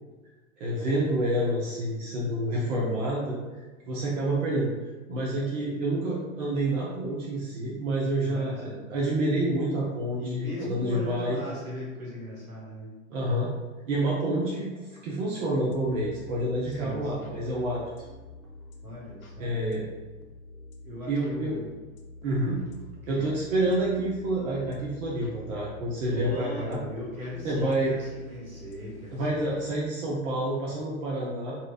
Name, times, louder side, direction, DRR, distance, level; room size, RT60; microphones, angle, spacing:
voice 1, 0.6-3.4 3.9-4.7 5.1-11.4 13.1-13.5 13.9-14.7 15.0-17.8 19.4-19.9 21.1-21.6 22.2-22.7 23.1-26.8 27.4-27.9 29.1-31.6, right 1 dB, 60° right, -4 dB, 0.9 m, -28 dB
voice 2, 2.5-2.9 8.3-8.8 10.2-12.9 16.7-17.3 18.8-19.5 20.8-21.7 23.0-23.3 26.0-29.6, left 1 dB, 85° right, -4 dB, 1.5 m, -38 dB
sound 1, 15.7-29.9, left 2 dB, 80° left, 0.7 m, -48 dB
4.5 x 2.9 x 2.3 m, 1.2 s
figure-of-eight pair, 95°, 42 cm